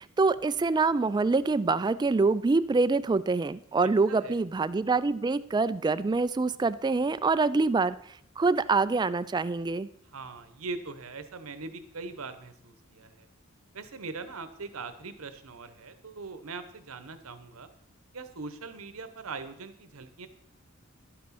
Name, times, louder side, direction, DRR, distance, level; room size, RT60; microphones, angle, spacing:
voice 1, 0.0-8.0 8.4-9.9, right 3 dB, 20° right, 16 dB, 0.3 m, -25 dB
voice 2, 3.8-4.4 10.1-13.3 13.7-17.7 18.1-20.3, right 4 dB, 90° right, 11 dB, 1.0 m, -41 dB
11.5 x 6.0 x 5.8 m, 0.70 s
head